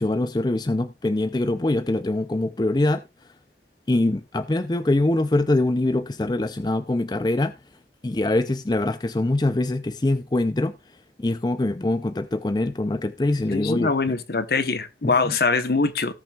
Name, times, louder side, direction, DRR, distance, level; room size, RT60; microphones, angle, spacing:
voice 1, 0.0-3.0 3.9-7.5 8.0-10.7 11.2-13.9 15.0-15.4, left 2 dB, 25° left, 0.5 m, -23 dB
voice 2, 13.5-16.1, left 4 dB, 60° left, 1.0 m, -23 dB
18.0 x 6.2 x 2.3 m
head